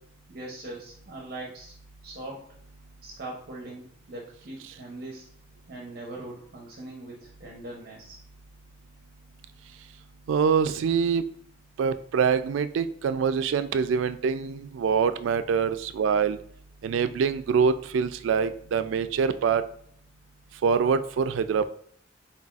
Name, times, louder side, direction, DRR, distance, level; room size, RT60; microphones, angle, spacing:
voice 1, 0.0-1.7 2.0-2.6 3.0-5.3 5.7-8.2, right 2 dB, 50° right, -2 dB, 0.7 m, -41 dB
voice 2, 10.3-11.3 11.8-16.4 16.8-19.6 20.6-21.7, right 6 dB, 80° right, 11 dB, 0.3 m, -24 dB
4.0 x 3.9 x 2.4 m, 0.62 s
head